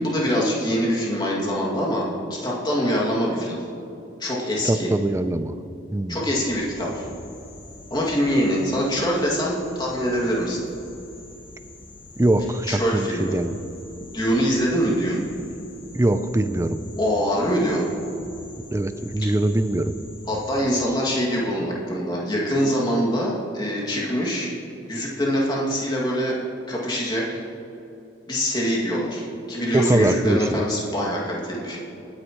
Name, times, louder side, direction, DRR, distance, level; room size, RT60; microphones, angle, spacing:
voice 1, 0.0-3.6 4.2-4.9 6.1-7.0 7.9-10.7 12.6-13.3 14.0-15.2 17.0-17.8 20.3-24.5 24.9-26.4 26.7-27.4 28.3-31.8, equal, 25° left, -4 dB, 2.3 m, -24 dB
voice 2, 4.6-5.5 5.9-6.2 12.2-13.6 15.9-16.8 18.7-20.0 29.7-30.6, right 1 dB, 15° right, 10 dB, 0.4 m, -22 dB
sound 1, 6.2-20.6, left 2 dB, 55° left, 2.5 m, -45 dB
19.5 x 9.6 x 3.1 m, 2.7 s
head